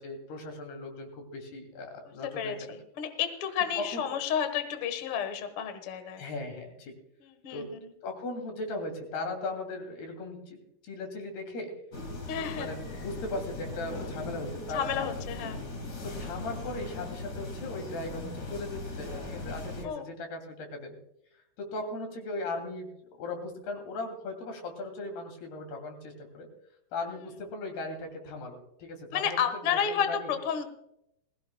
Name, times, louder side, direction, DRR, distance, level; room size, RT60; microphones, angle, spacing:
voice 1, 0.0-2.7 3.8-4.0 6.2-6.9 7.5-7.7 8.0-11.7 12.4-15.3 16.0-21.0 21.6-26.5 26.9-30.3, left 2 dB, 80° left, 4 dB, 4.8 m, -38 dB
voice 2, 2.2-6.2 7.4-7.8 12.3-12.7 14.7-15.6 19.8-20.0 29.1-30.6, left 8 dB, 60° left, 8 dB, 1.4 m, -31 dB
sound 1, 11.9-19.9, left 2 dB, 35° left, 1.9 m, -39 dB
20.5 x 16.0 x 2.2 m, 0.77 s
omnidirectional pair, 4.5 m